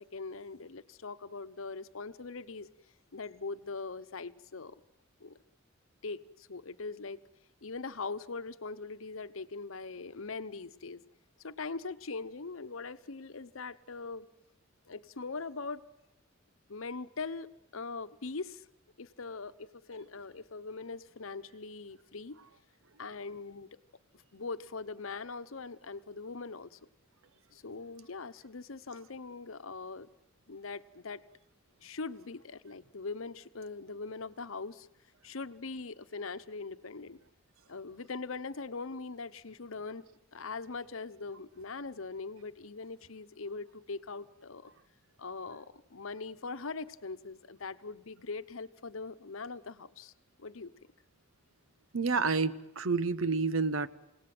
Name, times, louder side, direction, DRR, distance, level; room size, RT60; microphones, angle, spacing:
voice 1, 0.0-2.7 3.1-4.8 5.2-5.4 6.0-7.2 7.6-11.0 11.4-14.3 14.9-15.8 16.7-18.7 19.0-22.4 23.0-23.8 24.1-26.8 27.5-30.1 30.5-31.2 31.8-34.9 35.2-37.2 37.7-40.0 40.3-44.7 45.2-50.1 50.4-50.7, left 4 dB, 85° left, 12 dB, 0.9 m, -41 dB
voice 2, 51.9-53.9, right 4 dB, 85° right, 15 dB, 1.0 m, -29 dB
28.5 x 18.0 x 7.8 m, 0.94 s
head